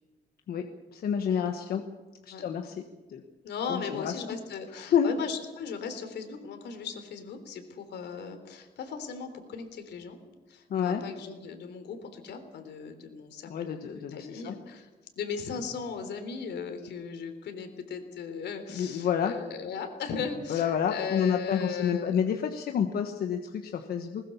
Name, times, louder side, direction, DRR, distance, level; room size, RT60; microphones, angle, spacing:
voice 1, 0.5-1.8 2.2-2.8 3.1-3.2 3.6-4.4 4.7-5.1 10.7-11.0 13.5-14.6 18.7-19.3 20.5-24.2, left 8 dB, 65° left, 5 dB, 1.4 m, -29 dB
voice 2, 3.4-10.2 10.5-14.9 15.2-22.2, left 6 dB, 90° left, 7 dB, 3.6 m, -37 dB
20.5 x 20.0 x 7.1 m, 1.2 s
wide cardioid pair, 180°, 17 cm